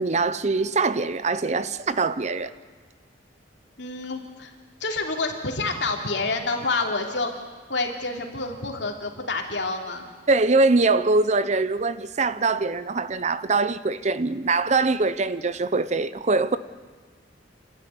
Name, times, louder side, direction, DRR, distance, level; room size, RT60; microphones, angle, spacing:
voice 1, 0.0-2.5 10.3-16.6, right 3 dB, 40° right, 0.7 m, -23 dB
voice 2, 3.8-4.5 4.8-7.3 7.7-10.1, left 3 dB, 70° left, 3.0 m, -28 dB
29.5 x 12.5 x 9.9 m
head